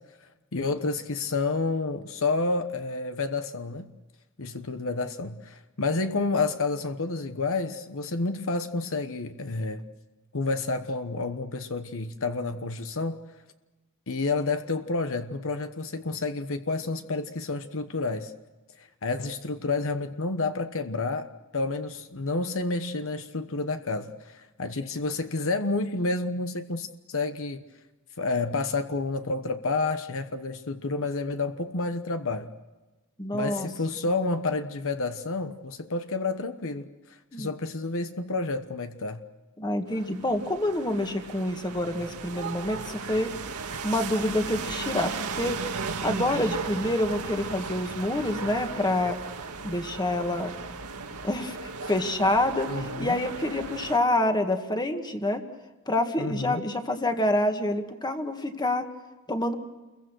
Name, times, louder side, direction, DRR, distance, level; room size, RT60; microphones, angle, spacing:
voice 1, 0.5-3.9 4.4-9.8 10.3-13.2 14.1-18.3 19.0-27.6 28.2-32.5 33.3-36.9 37.4-39.2 52.7-53.2 56.2-56.7, left 3 dB, 65° left, 8 dB, 1.1 m, -29 dB
voice 2, 33.2-33.7 37.3-37.5 39.6-43.3 43.8-45.6 46.0-49.2 49.6-50.5 51.2-55.4 55.9-58.9 59.3-59.6, left 1 dB, 20° left, 6 dB, 1.8 m, -27 dB
sound 1, 39.9-54.0, right 4 dB, 85° right, 2.0 m, -36 dB
29.0 x 22.5 x 6.3 m, 1.1 s
head